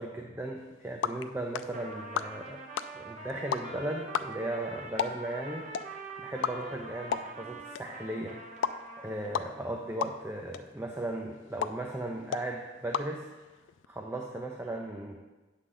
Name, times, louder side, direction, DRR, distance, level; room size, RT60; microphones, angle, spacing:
voice 1, 0.0-2.6 2.9-5.7 6.2-8.4 9.0-13.3 13.9-15.2, right 1 dB, 10° right, 1 dB, 0.4 m, -37 dB
sound 1, 0.6-13.9, left 7 dB, 75° left, 0.3 m, -38 dB
Trumpet, 1.7-9.6, right 2 dB, 40° right, 0.8 m, -44 dB
8.3 x 6.6 x 3.8 m, 1.2 s
head